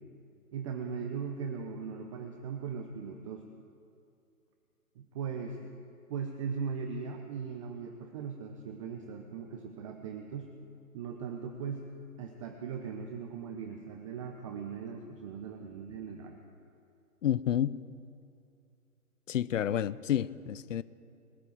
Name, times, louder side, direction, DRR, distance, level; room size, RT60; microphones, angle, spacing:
voice 1, 0.5-3.5 5.0-5.6 6.1-10.5 10.9-11.8 12.2-16.4, right 6 dB, 20° right, 4 dB, 0.6 m, -39 dB
voice 2, 17.2-17.8 19.3-20.8, left 10 dB, 55° left, 19 dB, 0.6 m, -29 dB
21.5 x 9.1 x 5.1 m, 2.6 s
figure-of-eight pair, 135°, 45 cm